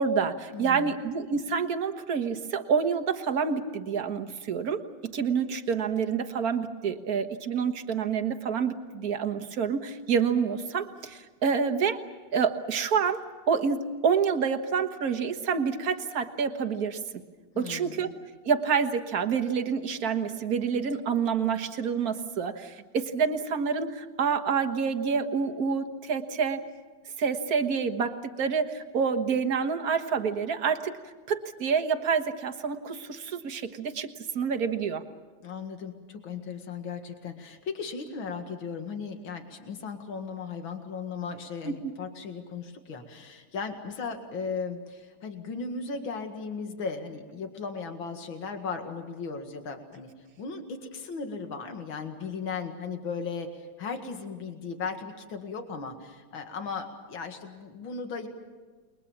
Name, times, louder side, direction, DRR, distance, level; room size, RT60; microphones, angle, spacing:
voice 1, 0.0-12.0 12.3-17.0 17.6-18.1 18.5-26.6 27.2-30.9 31.3-34.1 34.4-35.0 41.7-41.9, right 6 dB, 50° right, 7 dB, 1.9 m, -28 dB
voice 2, 0.5-1.0 17.5-18.1 35.4-50.1 50.4-58.3, left 5 dB, 80° left, 5 dB, 2.7 m, -36 dB
29.5 x 22.5 x 7.3 m, 1.4 s
omnidirectional pair, 2.1 m